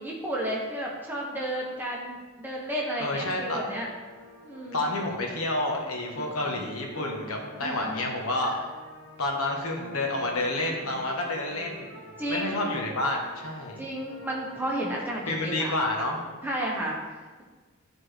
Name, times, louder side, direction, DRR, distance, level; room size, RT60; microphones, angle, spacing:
voice 1, 0.0-3.9 4.4-4.9 6.2-6.6 7.6-8.0 8.4-8.5 12.2-12.6 13.8-15.7 16.4-17.0, right 1 dB, 10° right, -3 dB, 1.0 m, -32 dB
voice 2, 3.0-3.6 4.7-8.5 9.2-11.9 12.3-13.9 15.3-16.2, left 2 dB, 80° left, 0 dB, 1.3 m, -29 dB
sound 1, 3.5-16.3, left 2 dB, 60° left, 1.2 m, -48 dB
11.5 x 4.2 x 3.3 m, 1.3 s
head